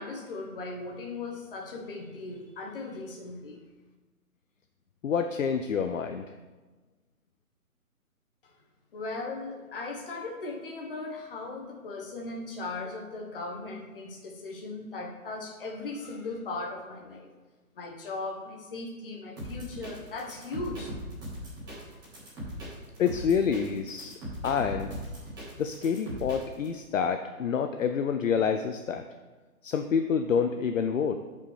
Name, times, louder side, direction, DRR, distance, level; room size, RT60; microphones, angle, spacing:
voice 1, 0.0-3.6 8.4-8.5 8.9-17.3 17.7-21.0 21.7-22.0, left 3 dB, 35° left, 1 dB, 1.3 m, -38 dB
voice 2, 5.0-6.2 23.0-24.1 24.4-24.9 25.6-29.0 29.6-31.2, left 6 dB, 60° left, 7 dB, 0.6 m, -27 dB
sound 1, 19.4-26.7, right 1 dB, 10° right, 1.6 m, -39 dB
13.0 x 5.3 x 3.3 m, 1.3 s
hypercardioid pair, 160°, 45 cm